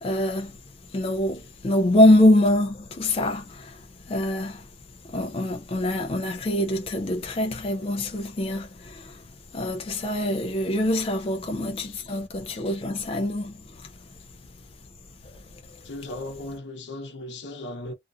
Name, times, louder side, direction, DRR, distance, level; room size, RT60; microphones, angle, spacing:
voice 1, 0.0-0.5 0.9-3.7 4.1-4.6 5.1-9.1 9.5-13.5, left 1 dB, 30° left, 0.3 m, -24 dB
voice 2, 11.8-12.2 15.8-17.9, left 1 dB, 75° left, 0.8 m, -37 dB
2.4 x 2.4 x 2.2 m
head